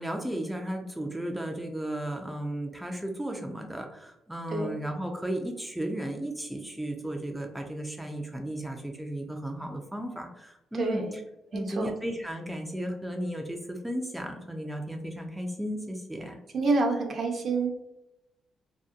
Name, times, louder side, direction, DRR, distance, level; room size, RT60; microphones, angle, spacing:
voice 1, 0.0-11.2 11.5-16.4, right 1 dB, 5° right, 1 dB, 0.3 m, -34 dB
voice 2, 10.8-11.2 11.5-11.9 16.5-17.7, right 3 dB, 50° right, 2 dB, 0.6 m, -27 dB
2.6 x 2.1 x 2.3 m, 0.89 s
cardioid pair, 90°, 0 cm